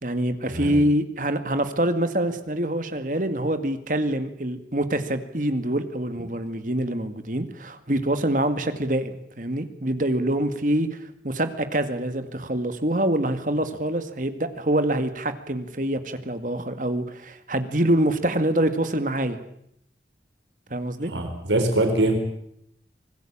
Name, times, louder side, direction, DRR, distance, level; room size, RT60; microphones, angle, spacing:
voice 1, 0.0-19.4 20.7-21.1, right 1 dB, 45° right, 9 dB, 2.0 m, -25 dB
voice 2, 21.0-22.2, right 1 dB, 90° right, 6 dB, 4.2 m, -23 dB
25.5 x 19.5 x 8.7 m, 0.73 s
head